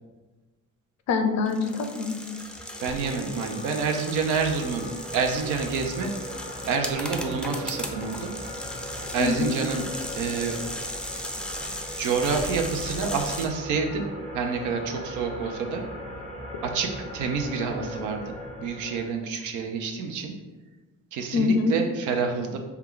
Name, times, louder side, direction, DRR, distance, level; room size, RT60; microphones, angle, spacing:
voice 1, 1.1-2.3 9.2-9.5 21.3-21.8, left 4 dB, 65° left, 6 dB, 0.6 m, -24 dB
sound 1, 1.5-13.5, left 1 dB, 5° left, 0.4 m, -37 dB
sound 2, 2.2-19.0, equal, 20° right, 0.8 m, -39 dB
voice 2, 2.8-4.9 5.1-6.1 6.7-8.3 9.1-9.8 10.2-10.6 12.0-14.1 14.3-15.8 16.6-20.3 21.1-22.6, right 5 dB, 90° right, 4 dB, 0.6 m, -28 dB
4.6 x 2.3 x 3.7 m, 1.2 s
cardioid pair, 90°, 30 cm